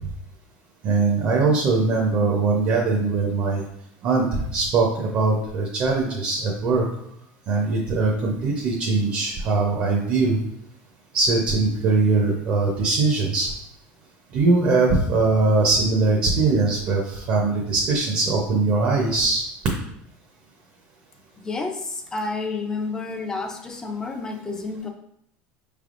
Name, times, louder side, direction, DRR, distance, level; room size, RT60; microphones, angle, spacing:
voice 1, 0.8-3.6 4.0-6.8 7.5-10.4 11.1-13.5 14.3-19.4, right 3 dB, 40° right, -1 dB, 0.7 m, -21 dB
voice 2, 21.4-24.9, left 3 dB, 15° left, 5 dB, 0.4 m, -30 dB
5.0 x 3.4 x 2.5 m, 0.72 s
cardioid pair, 160°, 4 cm